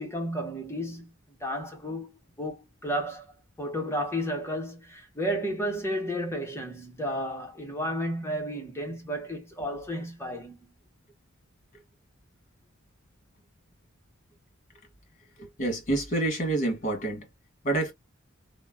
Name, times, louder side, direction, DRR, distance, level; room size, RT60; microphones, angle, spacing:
voice 1, 0.0-2.1 2.4-3.3 3.6-10.7, equal, 15° left, 0.8 m, -32 dB
voice 2, 15.4-17.3 17.6-17.9, right 2 dB, 35° left, 1.4 m, -28 dB
2.9 x 2.1 x 2.3 m
head